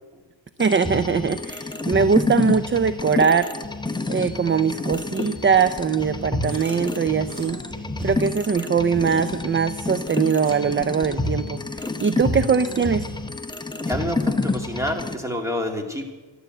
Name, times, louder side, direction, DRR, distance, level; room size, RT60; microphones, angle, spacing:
sound 1, 0.6-15.1, left 2 dB, 10° left, 0.9 m, -29 dB
voice 1, 0.6-3.5 4.1-7.6 8.0-13.0, right 6 dB, 25° right, 13 dB, 0.5 m, -21 dB
Chewing mastication, 6.4-6.8 7.3-7.5 7.9-8.1 8.5-8.7 9.2-9.4 9.9-10.0 10.4-10.7 11.1-11.2 11.8-11.9 12.5-12.6 13.1-13.2, right 2 dB, 45° right, 4.6 m, -48 dB
voice 2, 13.9-16.0, left 1 dB, 5° right, 3 dB, 2.4 m, -28 dB
13.0 x 12.0 x 7.9 m, 1.3 s
wide cardioid pair, 105°, 46 cm